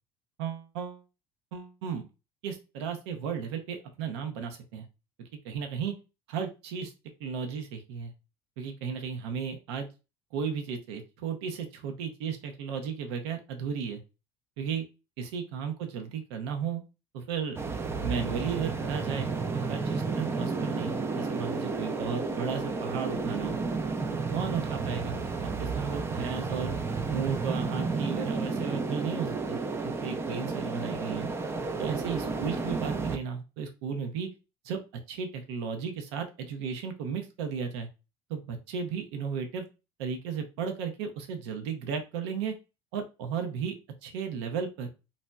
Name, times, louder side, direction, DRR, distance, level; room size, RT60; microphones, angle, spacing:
voice 1, 0.4-1.0 1.5-2.1 2.4-4.8 5.2-5.9 6.3-6.9 7.2-8.1 8.6-9.9 10.3-14.0 14.6-14.8 15.2-16.8 17.1-17.6 18.0-23.6 24.3-25.2 25.6-26.7 27.1-31.3 31.8-34.3 34.6-37.9 38.3-39.7 40.0-42.6 42.9-43.8 44.0-44.9, right 6 dB, 90° right, 5 dB, 0.6 m, -34 dB
sound 1, 17.6-33.2, right 4 dB, 20° right, 0.4 m, -32 dB
4.0 x 2.1 x 2.2 m, 0.29 s
supercardioid pair, 105°, 13 cm